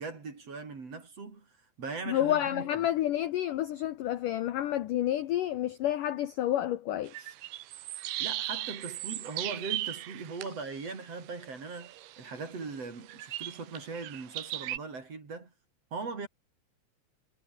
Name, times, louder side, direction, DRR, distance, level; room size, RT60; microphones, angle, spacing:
voice 1, 0.0-1.5 1.8-2.9 8.2-15.5 15.9-16.3, right 4 dB, 35° right, 4.7 m, -40 dB
voice 2, 2.1-7.3, left 12 dB, 70° left, 2.1 m, -29 dB
sound 1, 7.1-14.8, right 15 dB, 75° right, 3.1 m, -38 dB
omnidirectional pair, 5.0 m